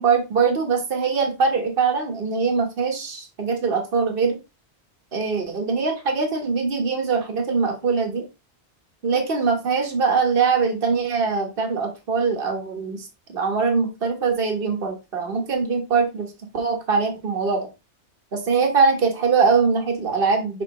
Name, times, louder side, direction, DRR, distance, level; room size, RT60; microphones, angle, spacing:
voice 1, 0.0-4.4 5.1-8.2 9.0-17.7 18.3-20.6, right 5 dB, 55° right, 3 dB, 1.6 m, -22 dB
6.3 x 5.8 x 3.0 m, 0.26 s
omnidirectional pair, 1.2 m